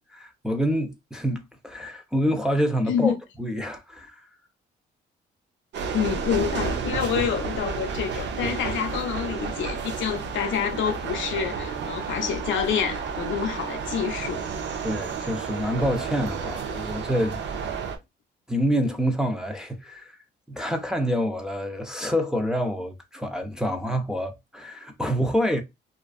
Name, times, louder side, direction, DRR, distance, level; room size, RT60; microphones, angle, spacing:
voice 1, 0.1-4.3 14.8-17.4 18.5-20.2 20.5-25.6, equal, 5° right, 0.5 m, -27 dB
sound 1, 5.7-18.0, right 5 dB, 65° right, 0.6 m, -31 dB
voice 2, 5.9-14.5 16.8-16.9, left 8 dB, 70° left, 0.6 m, -27 dB
2.5 x 2.3 x 2.3 m
cardioid pair, 90°, 20 cm